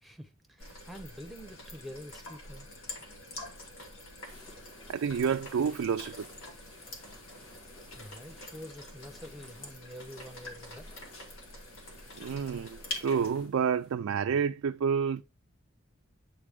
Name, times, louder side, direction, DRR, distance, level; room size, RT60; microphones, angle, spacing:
voice 1, 0.0-2.7 7.9-11.0, equal, ahead, 0.8 m, -47 dB
sound 1, 0.6-13.3, left 1 dB, 75° left, 2.0 m, -46 dB
sound 2, 4.2-14.0, left 2 dB, 90° left, 2.0 m, -55 dB
voice 2, 4.9-6.3 12.2-15.2, right 6 dB, 70° right, 0.4 m, -29 dB
8.6 x 4.0 x 3.5 m
head